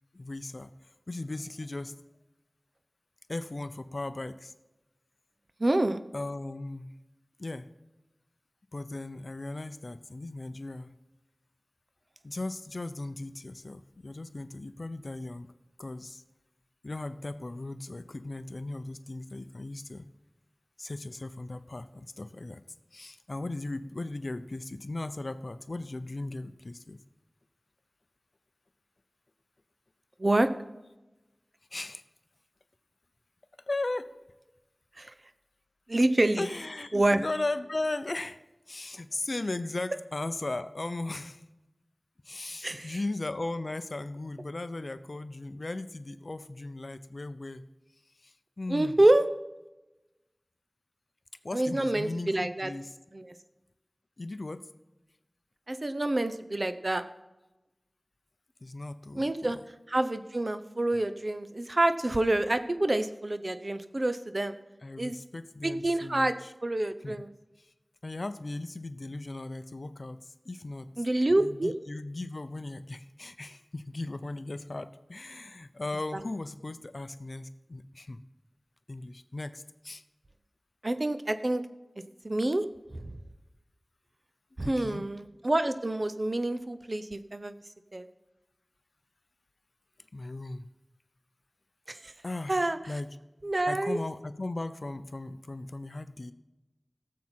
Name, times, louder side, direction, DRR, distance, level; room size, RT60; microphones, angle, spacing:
voice 1, 0.1-0.7 1.1-2.0 3.3-4.5 6.1-6.9 7.4-7.7 8.7-10.9 12.2-15.5 15.8-16.2 16.8-20.1 20.8-22.6 22.9-27.0 31.7-32.0 33.7-34.1 36.4-38.4 38.7-41.4 42.2-47.6 48.2-49.0 51.4-52.9 54.2-54.7 58.6-59.7 64.8-66.5 67.0-67.2 67.6-67.7 68.0-71.0 71.3-78.2 78.9-80.0 84.6-85.1 90.1-90.7 92.2-93.2 93.7-96.3, left 2 dB, 65° left, 12 dB, 0.6 m, -37 dB
voice 2, 5.6-6.0 30.2-30.5 35.0-35.1 35.9-36.5 36.9-37.2 42.6-43.0 48.7-49.3 51.5-52.7 53.1-53.3 55.7-57.1 59.2-59.6 59.9-64.6 65.0-65.2 65.6-66.4 66.6-67.3 71.0-71.7 76.1-76.2 80.8-81.6 82.2-82.7 82.9-83.1 84.6-87.5 87.9-88.0 91.9-92.1 92.5-92.8 93.4-94.0, right 1 dB, 50° right, 11 dB, 0.8 m, -27 dB
17.0 x 7.4 x 4.4 m, 1.0 s
wide cardioid pair, 40°, 0 cm